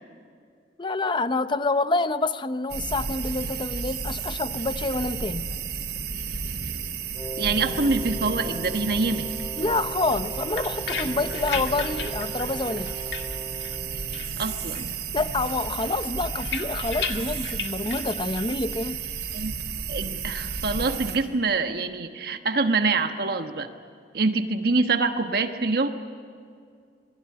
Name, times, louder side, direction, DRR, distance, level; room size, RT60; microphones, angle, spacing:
voice 1, 0.8-5.5 9.6-13.0 15.1-19.0, left 3 dB, 25° left, 0.8 m, -27 dB
sound 1, 2.7-21.2, right 6 dB, 85° right, 4.0 m, -32 dB
Wind instrument woodwind instrument, 7.1-14.4, right 1 dB, 5° left, 3.8 m, -39 dB
voice 2, 7.4-9.3 14.4-14.9 19.3-19.5 19.9-23.7 24.1-25.9, right 3 dB, 60° right, 1.3 m, -25 dB
sound 2, 10.1-13.9 14.1-15.0 15.3-18.5, left 6 dB, 80° left, 2.0 m, -36 dB
27.5 x 21.0 x 9.8 m
head